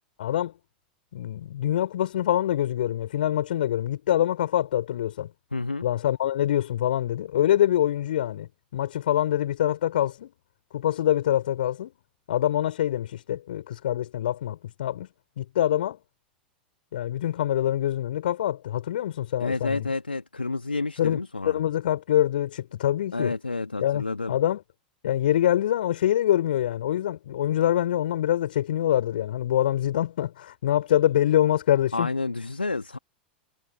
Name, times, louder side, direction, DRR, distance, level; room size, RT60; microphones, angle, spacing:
voice 1, 0.2-0.5 1.1-5.3 5.8-8.5 8.7-10.3 10.7-11.9 12.3-15.1 15.4-16.0 16.9-19.9 21.0-21.2 21.4-23.3 23.8-24.6 25.0-32.1, left 11 dB, 65° left, 6.4 m, -25 dB
voice 2, 5.5-5.8 19.4-21.6 23.1-24.4 31.9-33.0, left 3 dB, 85° left, 1.7 m, -29 dB
figure-of-eight pair, 90°, 5 cm